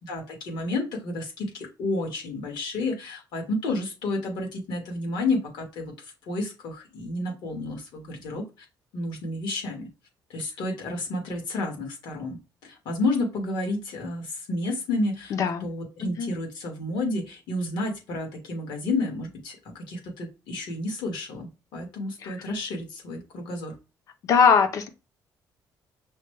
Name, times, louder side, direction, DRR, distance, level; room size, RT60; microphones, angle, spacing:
voice 1, 0.1-8.4 8.9-9.8 10.3-15.3 15.6-23.7, left 2 dB, 70° left, 1.7 m, -31 dB
voice 2, 15.3-15.7 16.0-16.3 22.2-22.5 24.2-24.9, left 6 dB, 45° left, 0.6 m, -21 dB
5.6 x 2.2 x 3.2 m
cardioid pair, 175°, 8 cm